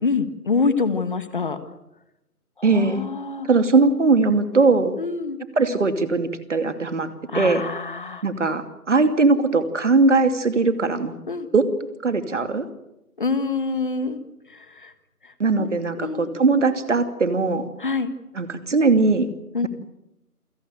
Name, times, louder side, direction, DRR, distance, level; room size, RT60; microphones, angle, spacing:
voice 1, 0.0-1.6 2.7-3.5 5.0-5.4 7.3-8.2 11.3-11.5 13.2-14.2 14.5-14.9 15.2-15.7 16.0-16.3 17.8-18.1 19.5-19.7, left 4 dB, 35° left, 12 dB, 1.6 m, -26 dB
voice 2, 2.6-3.0 3.4-4.9 5.6-7.1 7.3-7.6 8.2-11.1 11.5-11.6 12.0-12.7 15.4-17.7 18.3-19.3, right 3 dB, 50° right, 9 dB, 2.7 m, -20 dB
28.0 x 17.0 x 9.1 m, 0.89 s
figure-of-eight pair, 160°, 46 cm